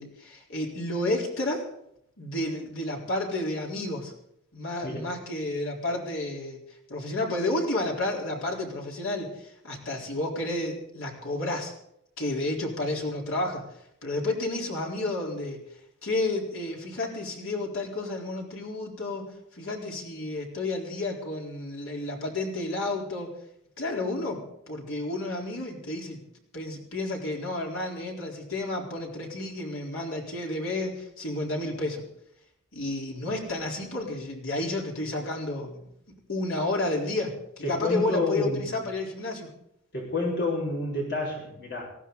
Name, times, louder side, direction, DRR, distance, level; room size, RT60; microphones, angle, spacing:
voice 1, 0.0-1.6 2.2-4.1 4.5-6.6 6.9-11.7 12.2-13.6 14.0-15.6 16.0-23.3 23.8-26.2 26.5-32.0 32.7-35.8 36.3-39.5, left 2 dB, 80° left, -2 dB, 4.1 m, -31 dB
voice 2, 37.6-38.8 39.9-41.8, left 2 dB, 55° left, -3 dB, 5.0 m, -29 dB
19.0 x 15.5 x 4.1 m, 0.75 s
head